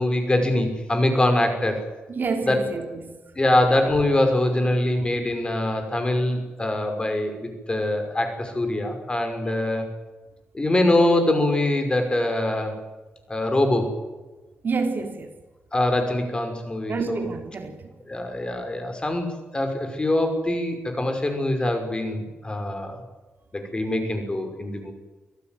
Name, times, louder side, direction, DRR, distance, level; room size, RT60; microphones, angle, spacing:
voice 1, 0.0-1.9 2.5-2.6 3.4-9.9 10.5-12.8 13.3-13.9 15.7-17.3 18.1-23.0 23.5-24.9, left 1 dB, 20° left, 5.6 m, -23 dB
voice 2, 2.1-3.1 14.6-15.3 16.9-17.9, right 4 dB, 50° right, 3.4 m, -28 dB
25.5 x 15.5 x 9.4 m
cardioid pair, 105°, 4 cm